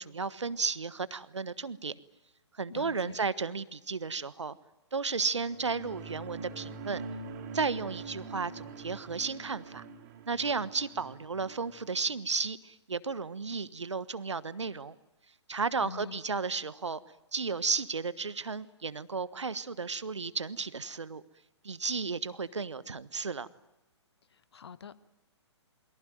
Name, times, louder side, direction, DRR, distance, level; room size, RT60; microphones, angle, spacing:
voice 1, 0.0-1.9 2.6-4.6 4.9-7.0 7.5-9.8 10.3-14.9 15.5-17.0 17.3-21.2 21.6-23.5, right 4 dB, 75° right, 16 dB, 1.3 m, -33 dB
voice 2, 2.7-3.2 15.8-16.2 24.3-25.1, left 6 dB, 60° left, 15 dB, 1.4 m, -45 dB
sound 1, 5.3-12.0, right 4 dB, 35° right, 4.2 m, -44 dB
28.5 x 22.5 x 9.3 m, 0.96 s
figure-of-eight pair, 125°, 15 cm